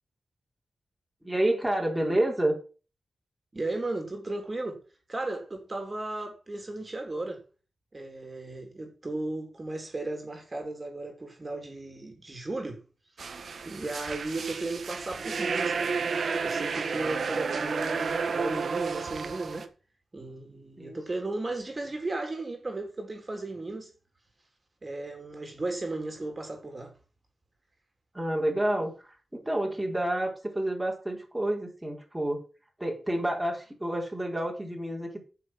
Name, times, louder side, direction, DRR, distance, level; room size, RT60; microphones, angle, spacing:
voice 1, 1.2-2.6 20.8-21.0 28.1-32.4 32.8-35.2, right 1 dB, 10° right, 4.0 m, -29 dB
voice 2, 3.5-4.8 5.1-7.4 7.9-12.8 13.7-16.0 16.4-19.7 20.1-23.9 24.8-26.9, right 2 dB, 30° right, 3.7 m, -35 dB
sound 1, 13.2-19.7, right 5 dB, 75° right, 1.6 m, -31 dB
10.0 x 7.1 x 7.7 m
wide cardioid pair, 95°, 0 cm